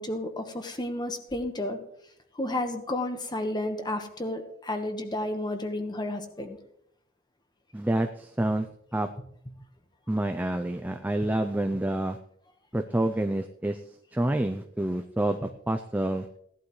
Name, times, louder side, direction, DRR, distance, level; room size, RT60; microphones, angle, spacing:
voice 1, 0.0-1.8 2.3-6.6, left 1 dB, 20° left, 6 dB, 1.2 m, -32 dB
voice 2, 7.7-8.7 8.9-9.1 10.1-12.2 12.7-13.8 14.1-16.3, right 1 dB, 10° right, 6 dB, 0.4 m, -28 dB
16.5 x 11.5 x 3.2 m, 0.71 s
head